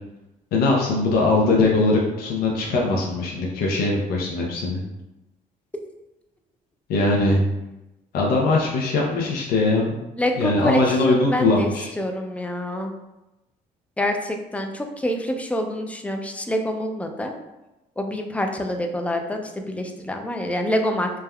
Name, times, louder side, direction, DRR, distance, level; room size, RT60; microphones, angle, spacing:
voice 1, 0.5-4.8 6.9-7.4 8.1-10.0 10.3-11.9, left 2 dB, 75° left, -2 dB, 0.5 m, -21 dB
voice 2, 10.2-11.7 12.0-12.9 14.0-17.3 18.0-21.1, left 1 dB, 10° left, 4 dB, 0.4 m, -26 dB
3.3 x 2.1 x 2.2 m, 0.98 s
cardioid pair, 80°, 16 cm